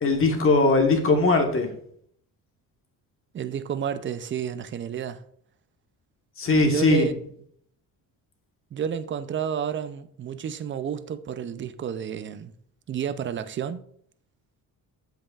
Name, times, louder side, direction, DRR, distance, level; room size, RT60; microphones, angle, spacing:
voice 1, 0.0-1.7 6.4-7.1, left 3 dB, 35° left, 1.2 m, -20 dB
voice 2, 3.3-5.2 6.7-7.1 8.7-12.5 12.9-13.8, right 8 dB, 30° right, 0.4 m, -30 dB
7.5 x 5.3 x 2.4 m
cardioid pair, 115°, 38 cm